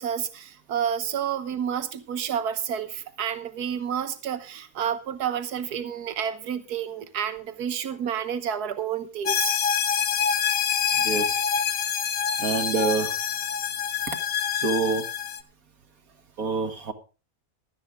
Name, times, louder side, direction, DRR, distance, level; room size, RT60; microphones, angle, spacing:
voice 1, 0.0-9.5, right 8 dB, 85° right, 11 dB, 1.6 m, -30 dB
sound 1, 9.3-15.4, left 7 dB, 65° left, 1.4 m, -26 dB
voice 2, 10.9-11.4 12.4-13.2 14.1-14.2 14.5-15.0 16.4-16.9, right 4 dB, 65° right, 7 dB, 2.1 m, -27 dB
16.5 x 12.5 x 3.7 m, 0.34 s
omnidirectional pair, 1.6 m